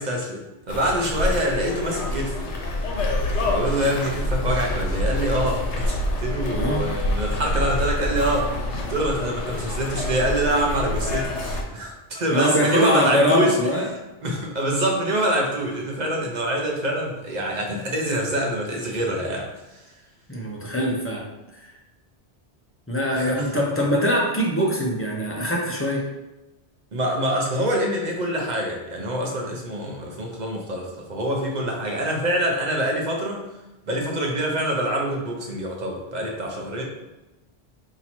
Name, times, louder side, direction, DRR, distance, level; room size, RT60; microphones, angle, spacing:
voice 1, 0.0-2.5 3.4-8.5 8.9-13.6 14.2-19.5 23.1-23.6 26.9-33.4 33.9-36.8, right 1 dB, 45° right, 0 dB, 0.7 m, -25 dB
sound 1, 0.7-11.6, left 1 dB, 90° left, 1.0 m, -26 dB
voice 2, 6.5-6.9 12.3-13.9 20.3-21.2 22.9-26.0, equal, 20° left, -3 dB, 0.4 m, -22 dB
2.8 x 2.8 x 4.2 m, 1.0 s
omnidirectional pair, 1.1 m